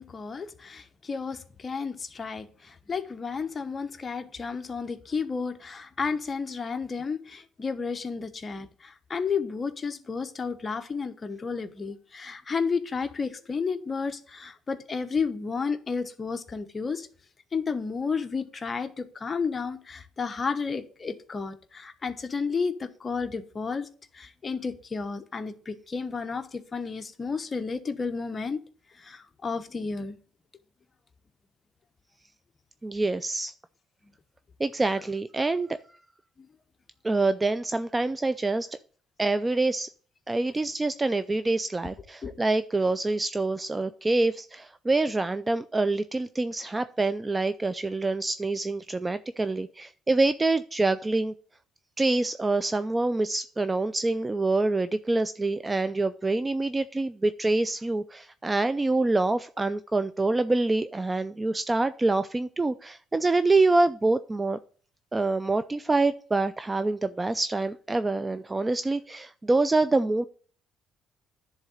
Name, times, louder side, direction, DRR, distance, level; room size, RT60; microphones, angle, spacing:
voice 1, 0.0-17.1 17.5-23.9 24.1-28.6 28.9-30.2 36.4-36.5 42.2-42.3, left 5 dB, 30° left, 1.0 m, -32 dB
voice 2, 32.8-33.5 34.6-35.8 37.0-38.7 39.2-39.9 40.3-51.3 52.0-64.6 65.1-70.2, right 2 dB, 20° right, 0.4 m, -26 dB
10.5 x 3.8 x 6.4 m
cardioid pair, 90°, 0 cm